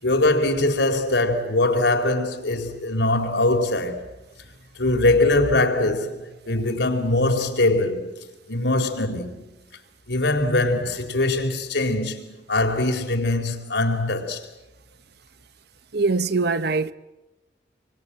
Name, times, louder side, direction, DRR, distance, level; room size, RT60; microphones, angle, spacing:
voice 1, 0.0-4.1 4.8-8.1 8.5-9.4 10.1-14.5, left 2 dB, 75° left, 4.3 m, -22 dB
voice 2, 15.9-16.9, right 3 dB, 60° right, 1.1 m, -22 dB
27.0 x 24.5 x 8.9 m
head